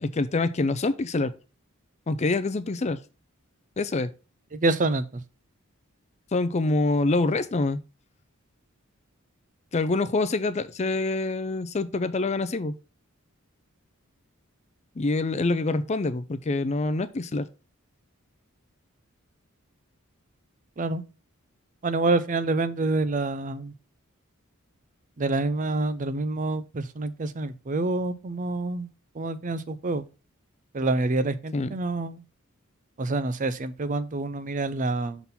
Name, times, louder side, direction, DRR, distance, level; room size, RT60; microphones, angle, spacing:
voice 1, 0.0-1.3 2.1-3.0 3.8-4.1 6.3-7.8 9.7-12.7 15.0-17.5 31.5-31.7, left 3 dB, 30° left, 0.5 m, -26 dB
voice 2, 4.5-5.0 20.8-21.0 21.8-23.7 25.2-28.9 29.2-30.0 30.7-32.2 33.0-35.2, right 2 dB, 40° right, 0.5 m, -27 dB
6.0 x 3.9 x 5.5 m
head